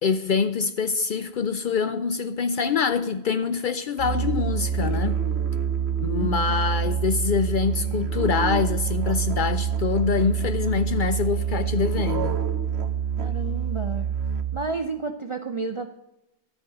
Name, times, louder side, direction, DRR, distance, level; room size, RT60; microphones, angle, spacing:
voice 1, 0.0-5.2 6.0-12.4, left 5 dB, 60° left, 0.5 m, -25 dB
Musical instrument, 4.0-14.8, right 8 dB, 70° right, 1.0 m, -26 dB
voice 2, 6.2-6.5 13.2-14.1 14.5-15.9, right 3 dB, 45° right, 0.4 m, -31 dB
13.0 x 4.4 x 7.6 m
omnidirectional pair, 1.2 m